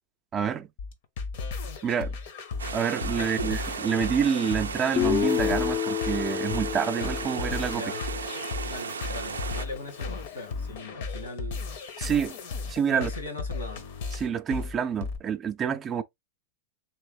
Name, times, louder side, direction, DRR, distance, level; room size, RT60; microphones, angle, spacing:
voice 1, 0.3-0.7 1.8-2.1 2.7-7.8 12.0-12.3 12.7-13.1 14.1-16.0, right 7 dB, 30° right, 0.4 m, -28 dB
sound 1, 0.8-15.2, left 4 dB, 65° left, 0.7 m, -35 dB
sound 2, 2.6-9.7, right 6 dB, 85° right, 0.4 m, -35 dB
voice 2, 3.2-3.5 7.7-8.0 8.6-11.7 12.9-13.9, left 1 dB, 85° left, 1.3 m, -39 dB
Guitar, 5.0-8.9, left 12 dB, 35° left, 0.3 m, -30 dB
3.3 x 3.0 x 3.0 m
hypercardioid pair, 100°, 0 cm